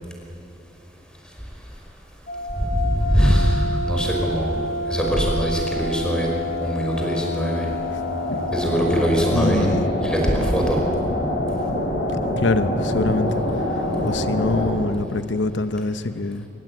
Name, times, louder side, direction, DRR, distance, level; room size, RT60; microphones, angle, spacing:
sound 1, 2.3-14.7, left 1 dB, 50° left, 5.4 m, -26 dB
voice 1, 2.6-4.6 4.9-7.7 8.5-10.8, equal, 5° left, 0 dB, 5.2 m, -22 dB
voice 2, 9.3-9.9 12.4-13.4 13.7-16.5, left 3 dB, 85° left, 11 dB, 0.9 m, -24 dB
23.5 x 22.0 x 9.5 m, 2.8 s
head